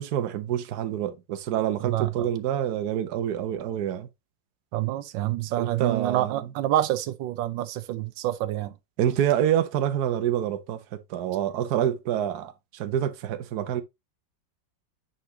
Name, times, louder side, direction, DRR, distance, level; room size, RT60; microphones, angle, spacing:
voice 1, 0.0-4.1 5.6-6.4 9.0-13.8, right 10 dB, 65° right, 1.2 m, -27 dB
voice 2, 4.7-8.7, right 13 dB, 80° right, 1.3 m, -27 dB
9.1 x 4.3 x 2.7 m
omnidirectional pair, 2.0 m